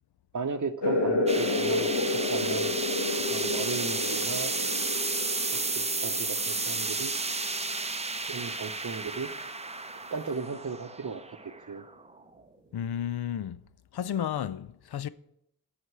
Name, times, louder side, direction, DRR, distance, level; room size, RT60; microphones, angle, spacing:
voice 1, 0.3-2.7 3.3-4.5 5.8-7.1 8.3-9.3 10.1-11.2 11.7-11.8, right 5 dB, 45° right, 0.8 m, -35 dB
sound 1, 0.8-8.0, left 2 dB, 90° left, 1.2 m, -31 dB
sound 2, 1.3-12.4, right 3 dB, 15° right, 0.6 m, -32 dB
voice 2, 12.7-13.6 13.9-15.1, left 9 dB, 70° left, 0.5 m, -32 dB
8.0 x 5.7 x 7.6 m
cardioid pair, 45°, 40 cm